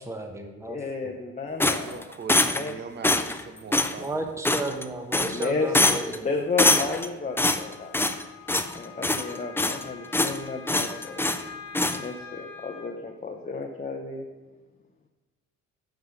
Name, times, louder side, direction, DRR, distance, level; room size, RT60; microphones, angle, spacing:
voice 1, 0.0-0.8 4.0-6.3, right 2 dB, 10° right, 5 dB, 1.1 m, -33 dB
voice 2, 0.7-2.0 2.5-2.7 3.0-3.2 5.2-5.7 6.2-7.9 8.7-11.3 11.9-14.2, left 4 dB, 25° left, 0 dB, 0.9 m, -32 dB
sound 1, 1.6-2.7 3.0-3.4 3.7-3.9 4.4-4.8 5.1-5.5 5.7-6.2 6.6-7.1 7.4-8.2 8.5-8.7 9.0-9.8 10.1-10.4 10.7-11.4 11.7-12.0, left 2 dB, 10° left, 0.5 m, -23 dB
voice 3, 1.8-4.1, right 5 dB, 35° right, 9 dB, 0.8 m, -41 dB
Wind instrument woodwind instrument, 7.2-12.9, left 6 dB, 75° left, 1.5 m, -45 dB
9.4 x 6.3 x 5.1 m, 1.2 s
cardioid pair, 90°, 30 cm